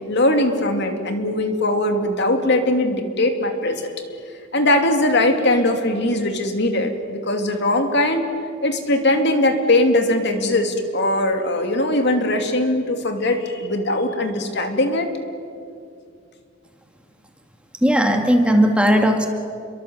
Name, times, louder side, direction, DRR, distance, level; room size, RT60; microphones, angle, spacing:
voice 1, 0.1-3.9 4.5-8.3 8.6-15.1, left 1 dB, 60° left, 5 dB, 2.7 m, -20 dB
voice 2, 17.8-19.3, equal, 5° right, 4 dB, 2.1 m, -16 dB
29.0 x 23.0 x 8.0 m, 2.3 s
head